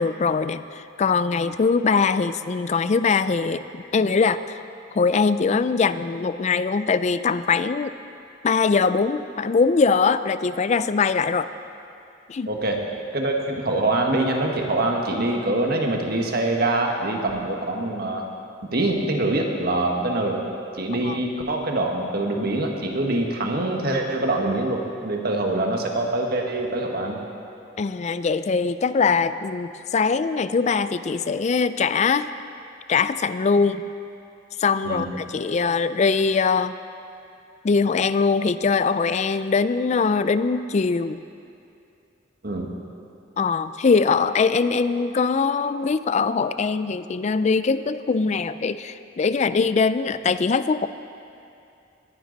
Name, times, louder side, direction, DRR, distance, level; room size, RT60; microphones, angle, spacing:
voice 1, 0.0-4.6 4.9-7.9 8.4-11.5 12.3-12.5 21.0-21.2 27.8-32.3 32.9-33.8 34.6-36.8 37.6-41.2 43.4-50.9, left 5 dB, 35° left, 13 dB, 0.4 m, -22 dB
voice 2, 12.5-12.8 13.1-18.2 18.7-20.4 20.8-27.2 34.8-35.1 42.4-42.7, right 2 dB, 55° right, 1 dB, 1.5 m, -24 dB
20.0 x 10.0 x 4.0 m, 2.6 s
head